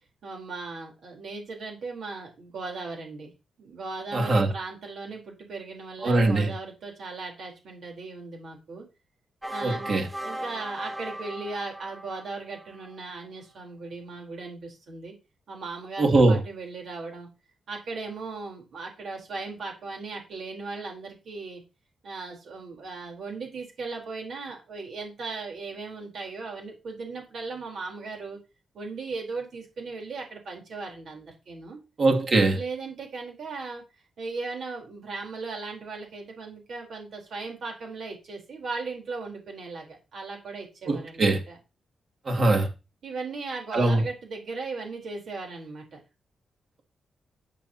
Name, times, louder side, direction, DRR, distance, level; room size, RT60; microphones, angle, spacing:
voice 1, 0.2-3.3 3.6-8.9 9.5-15.1 15.5-17.3 17.7-21.6 22.0-28.4 28.7-31.8 32.5-33.8 34.2-41.6 43.0-46.0, right 3 dB, 70° right, 4.1 m, -37 dB
voice 2, 4.1-4.5 6.0-6.5 9.6-10.1 16.0-16.4 32.0-32.6 40.9-41.4 42.3-42.7 43.7-44.0, right 2 dB, 45° right, 2.8 m, -21 dB
sound 1, 9.4-12.9, right 1 dB, 10° right, 2.2 m, -37 dB
12.0 x 8.5 x 3.0 m
cardioid pair, 105°, 0 cm